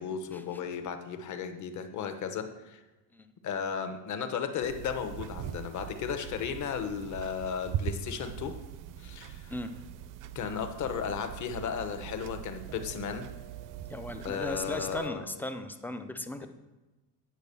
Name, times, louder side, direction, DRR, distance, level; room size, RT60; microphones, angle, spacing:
voice 1, 0.0-2.8 3.4-8.6 9.0-9.5 10.3-13.3 14.2-15.2 16.4-16.5, left 7 dB, 40° left, 8 dB, 1.1 m, -35 dB
sound 1, 4.6-15.1, right 10 dB, 50° right, 0.5 m, -41 dB
voice 2, 13.9-16.5, left 1 dB, 5° left, 8 dB, 0.4 m, -37 dB
9.1 x 5.1 x 6.8 m, 1.1 s
cardioid pair, 145°, 43 cm